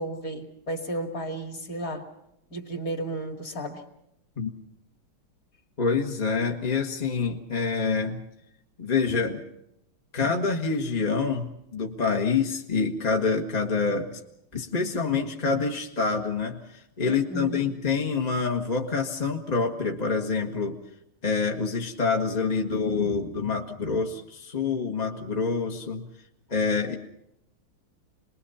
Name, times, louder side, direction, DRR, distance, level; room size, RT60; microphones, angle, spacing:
voice 1, 0.0-2.1 2.5-3.8 17.0-17.6, right 1 dB, 40° left, 4 dB, 2.8 m, -33 dB
voice 2, 5.8-8.2 8.8-9.4 10.1-14.2 14.5-20.8 21.2-26.1 26.5-27.0, left 4 dB, 20° left, 1 dB, 1.3 m, -26 dB
27.5 x 21.5 x 5.6 m, 0.82 s
omnidirectional pair, 2.4 m